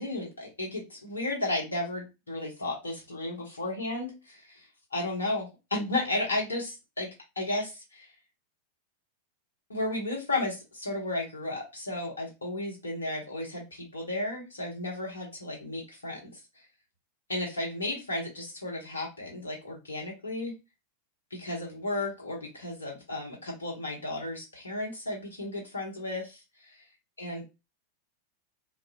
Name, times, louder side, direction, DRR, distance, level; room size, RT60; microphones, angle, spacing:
voice 1, 0.0-7.1 7.4-8.1 9.7-16.6 17.3-20.5 21.3-26.9 27.2-27.4, left 2 dB, 75° left, -1 dB, 1.1 m, -34 dB
2.5 x 2.2 x 2.7 m, 0.25 s
figure-of-eight pair, 90°, 0 cm